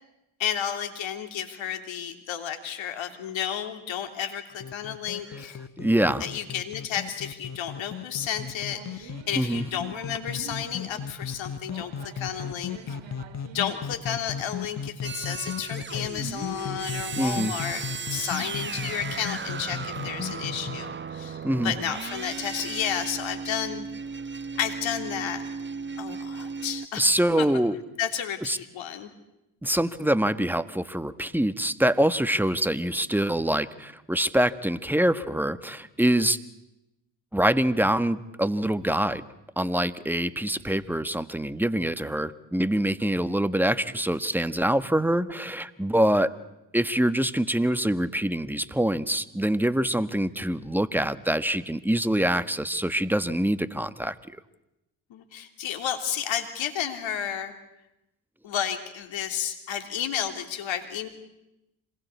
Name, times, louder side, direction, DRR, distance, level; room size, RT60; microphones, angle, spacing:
voice 1, 0.4-5.6 6.2-13.0 13.5-23.9 24.5-25.4 26.0-27.1 27.4-27.5 28.0-29.1 55.1-57.6 58.4-61.1, left 9 dB, 65° left, 7 dB, 3.2 m, -32 dB
sound 1, 4.6-20.8, left 7 dB, 35° left, 1.2 m, -36 dB
voice 2, 5.8-6.2 9.4-9.6 17.2-17.5 21.4-21.7 26.1-26.2 27.0-27.8 28.5-28.6 29.6-36.4 37.3-39.2 39.6-46.3 46.7-54.2, right 1 dB, 5° right, 13 dB, 1.4 m, -25 dB
sound 2, 8.4-14.9, right 7 dB, 65° right, 2.2 m, -48 dB
sound 3, 15.0-26.9, right 5 dB, 25° right, 0.9 m, -36 dB
26.5 x 20.5 x 8.4 m, 0.92 s
hypercardioid pair, 50°, 49 cm